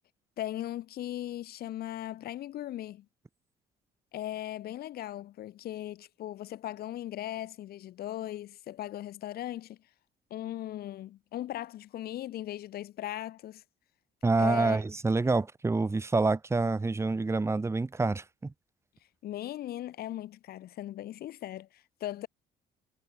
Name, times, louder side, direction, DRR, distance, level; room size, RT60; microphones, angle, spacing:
voice 1, 0.4-3.1 4.1-9.8 10.3-13.6 14.4-14.8 19.2-22.3, left 13 dB, 65° left, 2.1 m, -38 dB
voice 2, 14.2-18.5, right 3 dB, 15° right, 1.6 m, -27 dB
cardioid pair, 110°, 17 cm